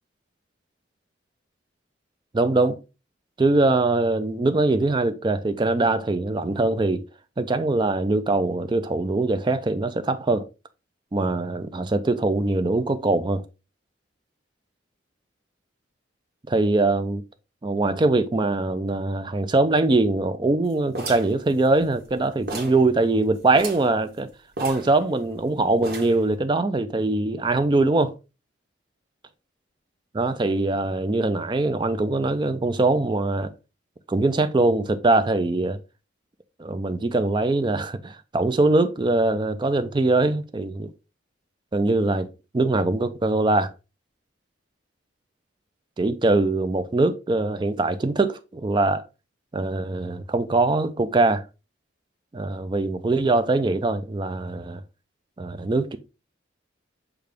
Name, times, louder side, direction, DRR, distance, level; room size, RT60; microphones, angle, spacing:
voice 1, 2.3-2.8 3.4-7.0 7.4-10.5 11.1-13.4 16.5-17.2 17.6-24.3 24.6-28.1 30.1-33.5 34.1-35.8 36.6-40.9 41.7-43.7 46.0-49.0 49.5-51.4 52.3-54.8 55.4-56.0, right 2 dB, 25° right, 0.4 m, -22 dB
sound 1, 20.9-22.2 22.5-22.9 23.1-23.2 23.5-23.9 24.6-25.4 25.8-26.3, right 2 dB, 55° right, 1.1 m, -34 dB
6.6 x 2.3 x 3.4 m
head